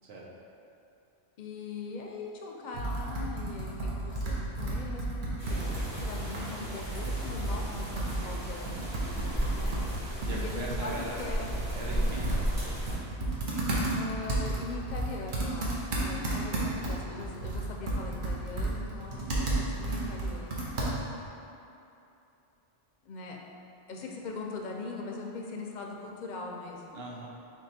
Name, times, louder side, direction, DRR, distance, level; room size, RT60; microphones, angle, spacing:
voice 1, 1.4-5.1 5.5-8.9 9.5-9.8 10.3-11.5 13.9-20.7 23.0-23.4 23.9-27.0, left 3 dB, 55° left, 0 dB, 0.5 m, -41 dB
Computer keyboard, 2.7-21.3, right 2 dB, 60° right, 0.9 m, -33 dB
sound 1, 5.4-13.0, equal, 25° right, 1.2 m, -35 dB
voice 2, 10.2-11.2 11.7-12.4 16.0-16.7 19.1-19.4 26.9-27.3, right 1 dB, 90° right, -3 dB, 1.0 m, -41 dB
4.5 x 2.3 x 4.0 m, 2.8 s
omnidirectional pair, 1.0 m